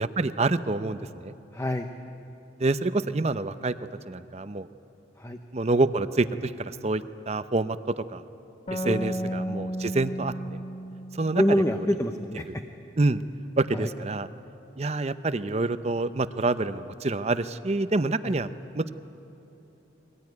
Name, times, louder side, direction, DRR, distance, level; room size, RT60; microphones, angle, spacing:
voice 1, 0.0-1.3 2.6-3.7 4.1-4.7 5.5-8.2 8.7-10.3 11.1-11.4 11.7-11.9 13.0-13.2 13.6-14.3 14.8-18.9, right 2 dB, 35° right, 12 dB, 0.7 m, -27 dB
voice 2, 1.5-1.9 5.2-5.4 8.8-9.3 11.3-12.5 13.7-13.9 18.2-18.4, equal, 15° left, 5 dB, 0.7 m, -26 dB
sound 1, 8.7-12.2, equal, 35° left, 1.2 m, -34 dB
23.0 x 18.5 x 9.6 m, 3.0 s
head